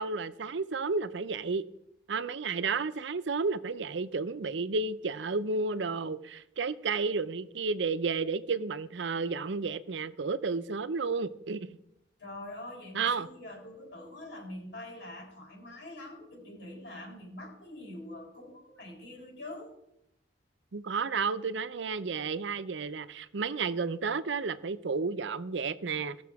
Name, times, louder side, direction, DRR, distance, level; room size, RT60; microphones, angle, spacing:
voice 1, 0.0-1.6 2.1-11.7 12.9-13.3 20.7-26.2, right 4 dB, 80° right, 0.6 m, -32 dB
voice 2, 12.2-19.7, left 1 dB, 70° left, 3.8 m, -44 dB
17.5 x 6.8 x 4.7 m
head